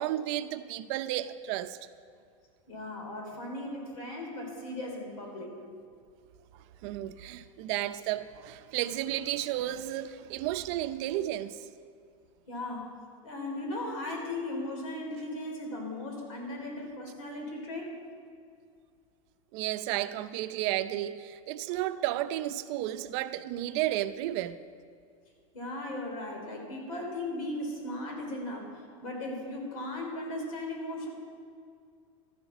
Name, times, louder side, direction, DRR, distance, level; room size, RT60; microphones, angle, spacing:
voice 1, 0.0-1.8 6.8-11.7 19.5-24.6, right 14 dB, 60° right, 0.6 m, -32 dB
voice 2, 2.7-5.5 12.5-13.0 13.2-18.0 25.5-31.1, left 1 dB, 80° left, 3.4 m, -37 dB
13.0 x 7.9 x 6.0 m
supercardioid pair, 125°, 17 cm